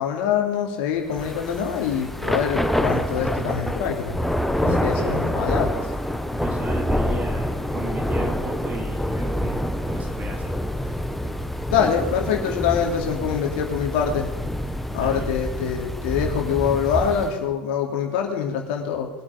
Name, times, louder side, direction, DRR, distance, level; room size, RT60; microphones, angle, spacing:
voice 1, 0.0-4.2 4.6-5.7 11.7-14.3 14.9-19.1, left 7 dB, 65° left, 2 dB, 3.0 m, -24 dB
Thunder / Rain, 1.1-17.4, left 1 dB, 5° left, 1.2 m, -26 dB
voice 2, 4.5-5.2 6.3-10.6 10.8-11.0 14.9-15.3, right 1 dB, 30° right, 2 dB, 3.9 m, -35 dB
21.5 x 8.8 x 5.1 m, 1.1 s
hypercardioid pair, 80°, 6 cm